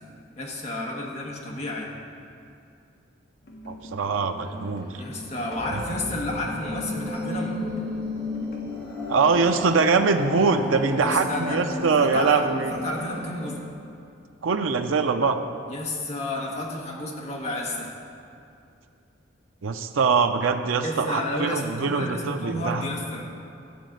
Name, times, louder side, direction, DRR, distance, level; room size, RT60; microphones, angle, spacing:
voice 1, 0.4-1.9 5.0-7.5 11.0-13.6 15.7-17.9 20.8-23.3, left 1 dB, 35° left, -2 dB, 1.3 m, -31 dB
sound 1, 3.4-9.6, equal, 50° left, 1.1 m, -42 dB
voice 2, 3.7-4.9 5.7-5.8 9.1-12.8 14.4-15.4 19.6-22.8, right 4 dB, 90° right, 7 dB, 0.5 m, -23 dB
sound 2, 5.5-13.5, left 2 dB, 5° left, 2.2 m, -33 dB
11.0 x 4.1 x 7.8 m, 2.5 s
head